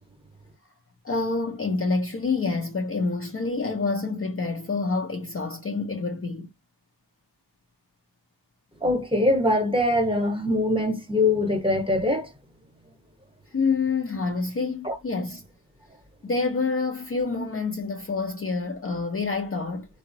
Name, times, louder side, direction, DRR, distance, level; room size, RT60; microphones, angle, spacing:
voice 1, 1.0-6.5 13.5-15.4 16.2-19.9, left 4 dB, 30° left, 0.6 m, -27 dB
voice 2, 8.8-12.3 14.8-15.0, left 1 dB, 10° right, 1.0 m, -23 dB
3.4 x 2.0 x 2.6 m
cardioid pair, 50°, 45 cm